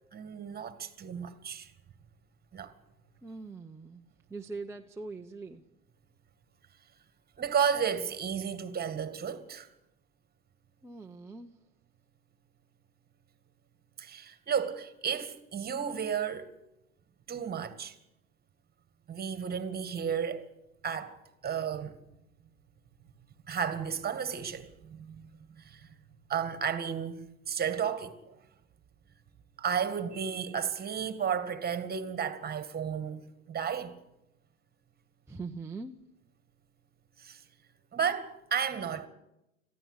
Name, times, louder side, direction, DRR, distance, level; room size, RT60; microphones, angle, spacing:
voice 1, 0.1-1.7 2.5-2.7 7.4-9.7 14.0-16.5 17.3-18.0 19.1-20.4 20.8-22.0 23.5-25.3 25.6-25.9 26.3-28.4 29.6-34.0 37.2-37.4 37.9-39.1, right 7 dB, 20° right, 2.0 m, -33 dB
voice 2, 3.2-4.0 4.3-5.6 10.8-11.5 35.3-35.9, right 3 dB, 5° right, 0.8 m, -42 dB
21.5 x 15.0 x 8.1 m
hypercardioid pair, 95°, 42 cm